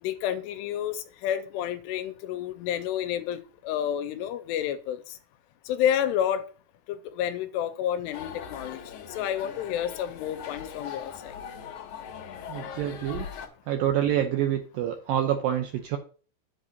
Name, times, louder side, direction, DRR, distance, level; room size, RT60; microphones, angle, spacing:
voice 1, 0.0-5.0 5.7-6.4 7.0-8.8 9.1-11.3, left 10 dB, 85° left, 10 dB, 2.8 m, -30 dB
sound 1, 8.1-13.5, left 8 dB, 65° left, 2.1 m, -40 dB
voice 2, 12.5-13.3 13.7-16.0, right 11 dB, 85° right, 5 dB, 2.0 m, -27 dB
10.0 x 7.9 x 2.7 m, 0.39 s
omnidirectional pair, 4.9 m